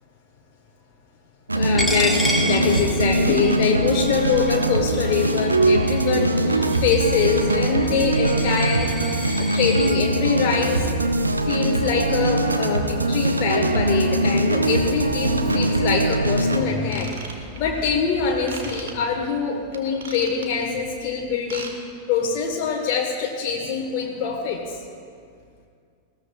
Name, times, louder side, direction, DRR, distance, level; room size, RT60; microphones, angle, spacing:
voice 1, 1.5-10.9 11.4-21.7 22.1-24.8, left 5 dB, 45° left, 0 dB, 1.2 m, -24 dB
sound 1, 1.5-16.6, right 1 dB, 80° right, 0.7 m, -22 dB
Coin (dropping), 1.8-9.9, equal, ahead, 1.6 m, -31 dB
Ratchet pawl / Tools, 16.8-17.8 18.5-18.9 19.7-20.7 21.3-21.7 22.0-22.2 22.7-22.8, right 5 dB, 65° right, 1.3 m, -37 dB
19.5 x 15.5 x 2.3 m, 2.2 s
figure-of-eight pair, 90°, 0 cm